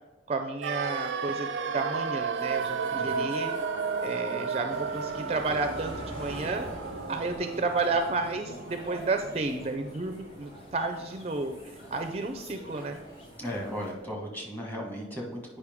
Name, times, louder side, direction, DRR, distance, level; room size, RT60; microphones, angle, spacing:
voice 1, 0.3-3.5 4.0-6.6 7.1-13.0, right 3 dB, 35° right, 6 dB, 0.4 m, -31 dB
sound 1, 0.6-10.6 10.8-10.9, right 5 dB, 90° right, 0.5 m, -34 dB
sound 2, 2.3-13.9, equal, 55° left, 2.3 m, -49 dB
voice 2, 2.9-3.3 13.4-15.6, equal, 10° left, -1 dB, 1.2 m, -36 dB
sound 3, 4.7-14.1, left 1 dB, 30° left, 0.8 m, -47 dB
8.2 x 5.3 x 3.5 m, 1.1 s
head